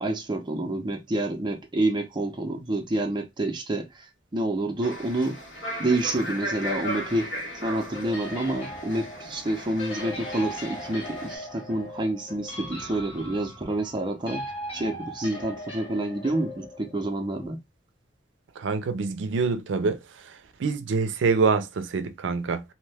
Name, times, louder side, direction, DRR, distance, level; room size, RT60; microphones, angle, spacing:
voice 1, 0.0-5.4 5.8-14.4 14.7-17.6, right 1 dB, 25° right, 0.5 m, -28 dB
sound 1, 4.8-11.4, equal, 80° left, 1.2 m, -36 dB
sound 2, 7.9-17.5, left 1 dB, 30° left, 1.3 m, -39 dB
voice 2, 18.6-20.0 20.6-22.6, right 4 dB, 85° right, 0.4 m, -25 dB
2.6 x 2.2 x 3.3 m
head